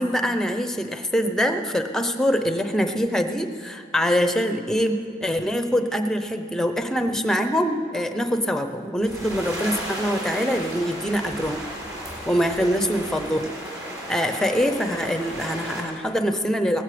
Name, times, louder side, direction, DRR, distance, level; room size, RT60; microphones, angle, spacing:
voice 1, 0.0-11.6 12.3-13.5 14.1-16.8, equal, 5° left, 7 dB, 0.7 m, -24 dB
sound 1, 9.0-15.8, equal, 20° right, 3.8 m, -34 dB
17.5 x 15.0 x 5.1 m, 2.4 s
head